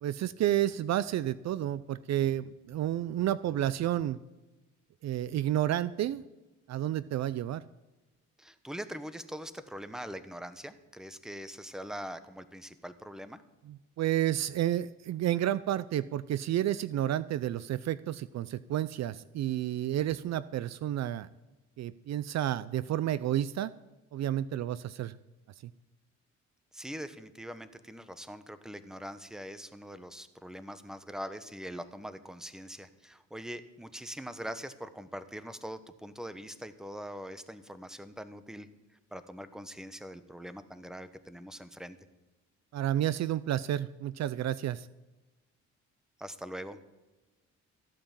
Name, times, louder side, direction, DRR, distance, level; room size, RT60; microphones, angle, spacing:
voice 1, 0.0-4.2 5.0-6.2 6.7-7.6 13.7-21.3 21.8-23.7 24.1-25.2 42.7-44.9, right 12 dB, 65° right, 17 dB, 0.5 m, -30 dB
voice 2, 8.4-13.4 26.7-38.7 39.1-42.0 46.2-46.8, equal, ahead, 12 dB, 1.1 m, -42 dB
14.5 x 8.8 x 7.4 m, 1.1 s
cardioid pair, 90°, 30 cm